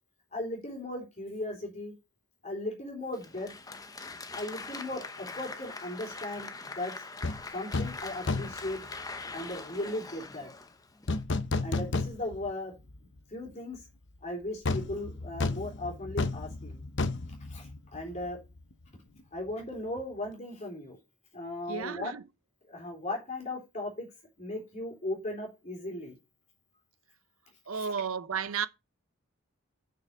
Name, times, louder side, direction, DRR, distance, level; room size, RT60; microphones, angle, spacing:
voice 1, 0.3-2.0 2.4-3.5 4.3-6.5 6.8-7.0 7.5-8.8 9.3-10.5 11.6-12.7 13.3-13.8 14.2-16.8 17.5-18.4 19.3-21.0 21.3-22.1 22.7-24.1 24.4-26.1 27.7-27.9, left 1 dB, 35° left, 3.6 m, -37 dB
Applause, 3.1-11.2, left 3 dB, 15° left, 0.8 m, -43 dB
sound 1, 7.2-7.4 7.7-8.0 8.3-8.7 11.1-12.5 12.9-13.0 14.6-18.3 18.6-18.7, left 3 dB, 55° left, 0.8 m, -31 dB
voice 2, 21.7-22.2 27.7-28.7, right 6 dB, 80° right, 0.8 m, -33 dB
6.7 x 6.5 x 6.4 m
head